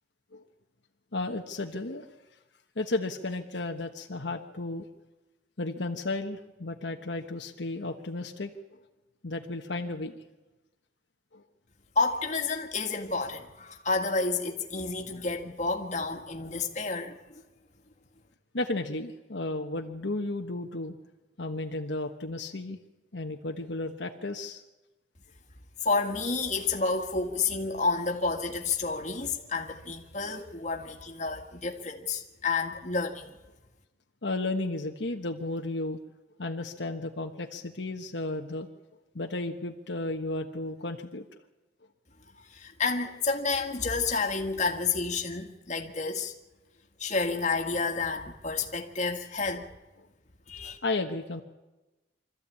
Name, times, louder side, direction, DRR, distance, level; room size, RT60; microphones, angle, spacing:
voice 1, 1.1-2.1 2.7-4.9 5.6-8.5 9.2-10.2 11.3-11.4 18.5-20.9 21.4-22.8 23.1-24.6 34.2-36.0 36.4-38.7 39.1-41.2 50.8-51.4, left 2 dB, 75° left, 1.3 m, -33 dB
voice 2, 12.0-17.2 25.8-33.3 42.5-46.3 47.0-49.6 50.5-50.8, left 4 dB, 40° left, 1.9 m, -30 dB
25.5 x 14.0 x 8.5 m
head